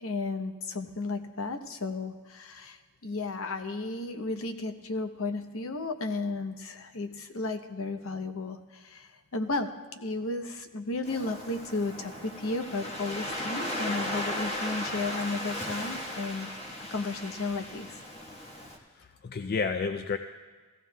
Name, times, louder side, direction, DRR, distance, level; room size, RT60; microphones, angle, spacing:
voice 1, 0.0-16.5 16.9-18.0, left 3 dB, 65° left, 6 dB, 0.8 m, -34 dB
Waves surf, 11.0-18.8, left 1 dB, 30° left, 1.3 m, -36 dB
voice 2, 18.9-20.2, left 5 dB, 45° left, 8 dB, 0.3 m, -31 dB
17.0 x 14.5 x 2.3 m, 1.4 s
head